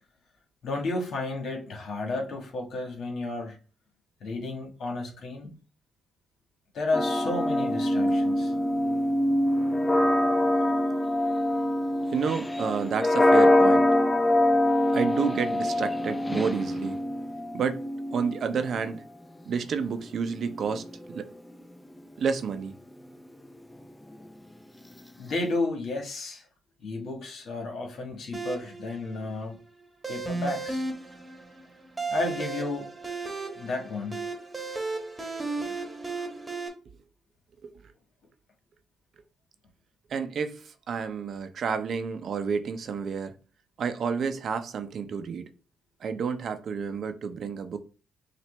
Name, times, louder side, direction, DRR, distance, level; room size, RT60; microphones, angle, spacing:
voice 1, 0.6-3.6 4.2-5.5 6.7-8.5 25.2-26.4 26.8-29.6 30.1-30.8 32.1-32.9 33.5-34.3 35.6-35.7, left 2 dB, 60° left, 1.6 m, -32 dB
sound 1, 6.9-18.9 19.9-21.2, left 1 dB, 10° left, 0.5 m, -24 dB
voice 2, 12.1-13.9 14.9-17.0 17.5-17.8 18.1-19.0 19.5-21.3 22.2-22.7 37.6-37.7 40.1-43.3 43.8-45.5 46.0-47.8, right 6 dB, 60° right, 0.6 m, -30 dB
sound 2, 28.3-36.7, right 3 dB, 20° right, 1.3 m, -35 dB
5.9 x 2.5 x 3.3 m
cardioid pair, 90°, 0 cm